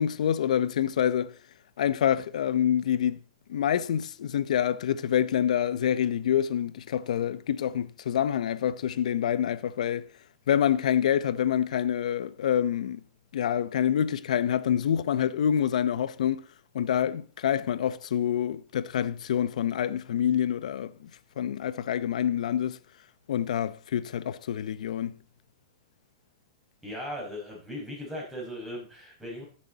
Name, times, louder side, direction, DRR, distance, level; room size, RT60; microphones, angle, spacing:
voice 1, 0.0-1.3 1.8-3.2 3.5-10.1 10.5-13.0 13.3-16.4 16.7-21.1 21.4-22.8 23.3-25.2, left 9 dB, 75° left, 0.8 m, -27 dB
voice 2, 26.8-29.4, left 1 dB, 5° right, 5.1 m, -38 dB
16.0 x 6.7 x 4.1 m
hypercardioid pair, 145°, 4 cm